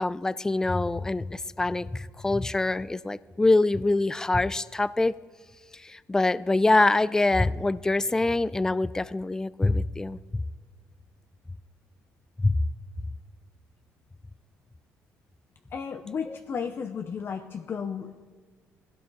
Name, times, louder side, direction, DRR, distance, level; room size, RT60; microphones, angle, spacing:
voice 1, 0.0-5.1 5.8-10.2 12.4-12.6 16.3-16.4, left 2 dB, 10° left, 18 dB, 0.3 m, -24 dB
voice 2, 15.7-18.3, left 6 dB, 40° left, 6 dB, 0.7 m, -34 dB
18.5 x 16.0 x 4.0 m, 1.5 s
cardioid pair, 120°, 6 cm